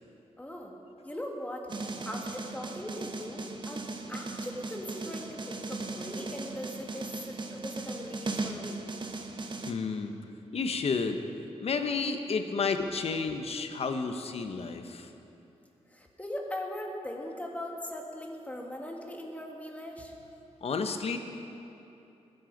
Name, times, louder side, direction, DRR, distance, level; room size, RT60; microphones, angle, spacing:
voice 1, 0.4-0.8 1.0-1.7 2.0-8.8 9.1-9.3 15.9-20.1, left 1 dB, 10° left, 0 dB, 1.7 m, -40 dB
amy beat, 1.7-9.7, right 3 dB, 40° right, 1.0 m, -38 dB
voice 2, 9.7-10.1 10.5-11.2 11.6-15.1 20.6-21.2, left 4 dB, 60° left, 7 dB, 0.9 m, -31 dB
20.0 x 7.9 x 5.2 m, 2.9 s
wide cardioid pair, 105°, 12 cm